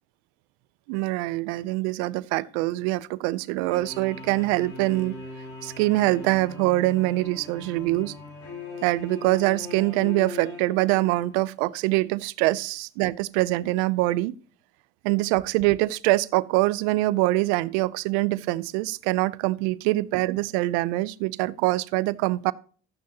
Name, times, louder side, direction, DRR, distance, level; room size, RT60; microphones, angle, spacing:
voice 1, 0.9-5.2 5.6-8.1 8.8-14.3 15.0-22.5, right 19 dB, 85° right, 0.5 m, -24 dB
sound 1, 3.7-11.4, left 3 dB, 90° left, 4.9 m, -40 dB
13.5 x 9.3 x 2.8 m
hypercardioid pair, 50°, 32 cm